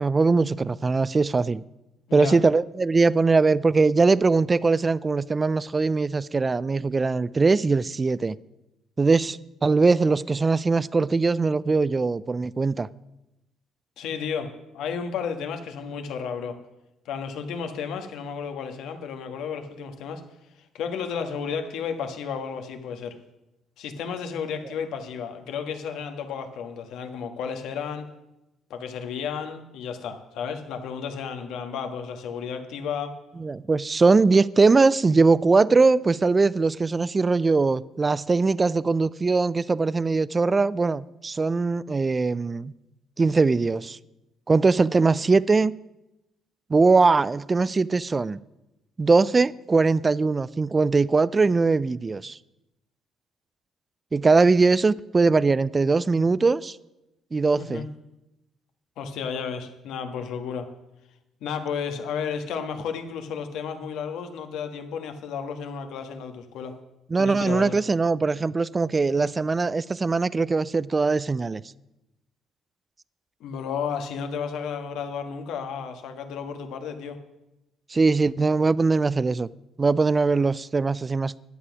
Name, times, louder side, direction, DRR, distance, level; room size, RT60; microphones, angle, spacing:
voice 1, 0.0-1.6 2.1-8.4 9.0-12.9 33.4-42.7 43.2-44.0 44.5-45.8 46.7-48.4 49.0-52.4 54.1-56.8 57.3-57.8 67.1-71.6 77.9-79.5 79.8-81.4, right 4 dB, 25° right, 20 dB, 0.3 m, -21 dB
voice 2, 14.0-16.6 17.0-20.2 20.7-23.1 23.8-28.0 28.7-33.2 57.6-57.8 59.0-60.7 61.4-66.7 67.2-67.7 73.4-77.2, left 6 dB, 80° left, 7 dB, 1.3 m, -32 dB
11.5 x 8.0 x 6.0 m, 0.93 s
cardioid pair, 110°, 0 cm